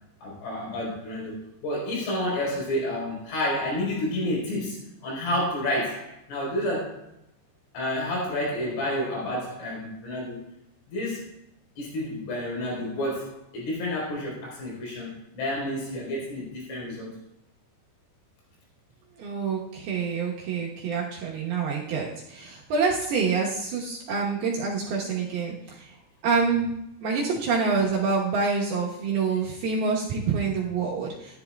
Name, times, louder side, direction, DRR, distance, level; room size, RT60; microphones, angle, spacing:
voice 1, 0.2-1.4 1.6-7.0 7.7-10.4 10.9-11.3 11.8-17.1, left 1 dB, 80° left, -4 dB, 6.4 m, -30 dB
voice 2, 19.2-26.0 26.2-26.7 27.0-31.4, right 5 dB, 70° right, -4 dB, 2.7 m, -27 dB
14.0 x 11.0 x 2.3 m, 0.82 s
omnidirectional pair, 5.3 m